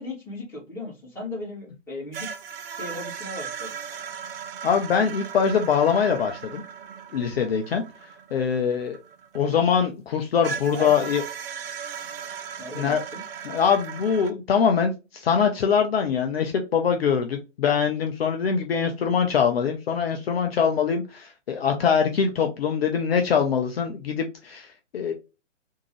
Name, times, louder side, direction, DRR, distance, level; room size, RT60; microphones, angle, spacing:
voice 1, 0.0-2.3 2.7-3.7 10.7-11.1 12.6-13.2, left 2 dB, 5° left, 2.1 m, -36 dB
sound 1, 2.1-9.8 10.4-14.3, right 7 dB, 50° right, 0.6 m, -37 dB
voice 2, 4.6-6.6 7.1-9.0 9.3-11.2 12.7-13.0 13.4-25.1, left 7 dB, 55° left, 0.6 m, -23 dB
3.7 x 2.7 x 3.0 m
figure-of-eight pair, 130°, 37 cm